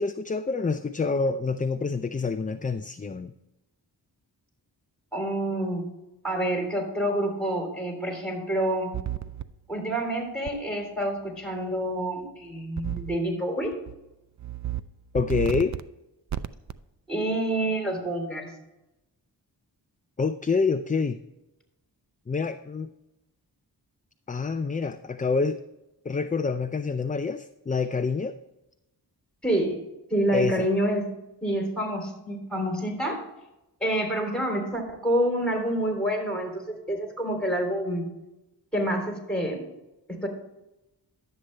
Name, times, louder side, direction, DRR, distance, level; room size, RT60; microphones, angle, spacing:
voice 1, 0.0-3.3 15.1-15.7 20.2-21.2 22.3-22.9 24.3-25.6 26.1-28.3 30.3-30.6, left 4 dB, 20° left, 10 dB, 0.4 m, -27 dB
voice 2, 5.1-5.8 6.2-8.9 9.7-13.7 17.1-18.5 29.4-29.8 30.1-31.1 31.4-33.2 33.8-38.1 38.7-39.7 40.1-40.3, right 1 dB, ahead, 1 dB, 3.4 m, -27 dB
sound 1, 8.9-9.4 10.5-10.6 12.8-13.2 13.6-13.9 14.4-14.8 15.1-15.8 16.3-16.7, right 12 dB, 45° right, 0.5 m, -32 dB
11.5 x 7.9 x 3.2 m, 0.94 s
cardioid pair, 50°, 42 cm